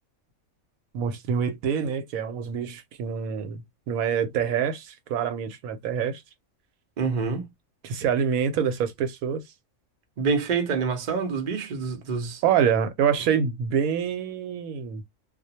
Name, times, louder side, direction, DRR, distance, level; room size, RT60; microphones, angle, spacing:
voice 1, 0.9-6.2 7.8-9.4 12.4-15.0, right 7 dB, 85° right, 1.0 m, -26 dB
voice 2, 7.0-7.5 10.2-12.4, right 5 dB, 45° right, 0.6 m, -27 dB
2.4 x 2.1 x 2.7 m
omnidirectional pair, 1.4 m